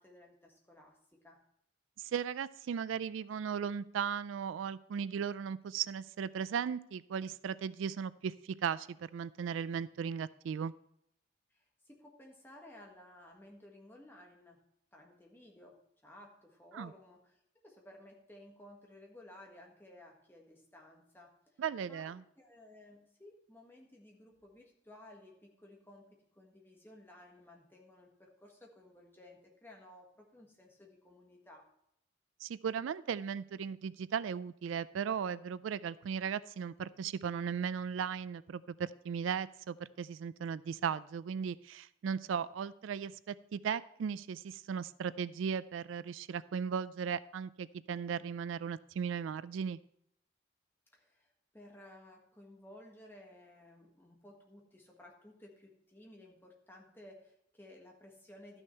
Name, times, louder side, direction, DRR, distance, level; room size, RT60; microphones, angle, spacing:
voice 1, 0.0-1.4 11.5-14.6 14.9-21.3 21.9-31.7 50.9-58.6, left 1 dB, 10° left, 0 dB, 1.5 m, -56 dB
voice 2, 2.0-10.7 16.7-16.9 21.6-22.2 32.4-49.8, right 7 dB, 85° right, 18 dB, 0.3 m, -37 dB
12.5 x 6.3 x 4.4 m, 0.73 s
head